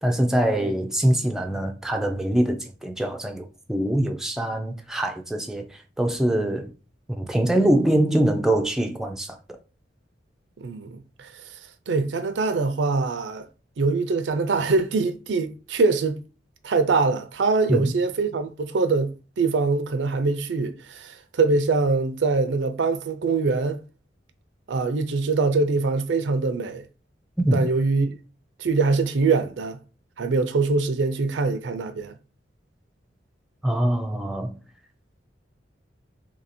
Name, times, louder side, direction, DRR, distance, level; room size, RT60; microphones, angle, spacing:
voice 1, 0.0-6.7 7.1-9.4 17.7-17.9 27.4-27.6 33.6-34.6, right 1 dB, 5° right, 0.4 m, -23 dB
voice 2, 10.6-11.3 11.9-13.5 13.8-16.2 16.6-23.8 24.7-26.8 27.5-28.2 28.6-29.8 30.2-32.2, right 3 dB, 75° right, 0.5 m, -23 dB
2.8 x 2.7 x 4.2 m
head